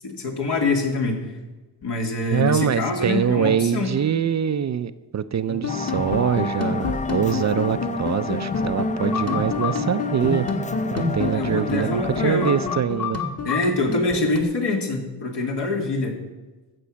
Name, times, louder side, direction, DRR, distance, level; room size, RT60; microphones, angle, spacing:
voice 1, 0.0-1.3 1.8-3.9 11.3-12.5 13.4-16.1, left 2 dB, 70° left, 1 dB, 2.6 m, -24 dB
voice 2, 2.3-10.5 10.9-13.2, right 8 dB, 40° right, 13 dB, 0.5 m, -24 dB
sound 1, 5.5-14.4, left 4 dB, 35° left, 1.7 m, -28 dB
sound 2, 5.7-12.8, left 4 dB, 20° left, 0.4 m, -31 dB
15.5 x 6.9 x 6.3 m, 1.2 s
cardioid pair, 110°, 42 cm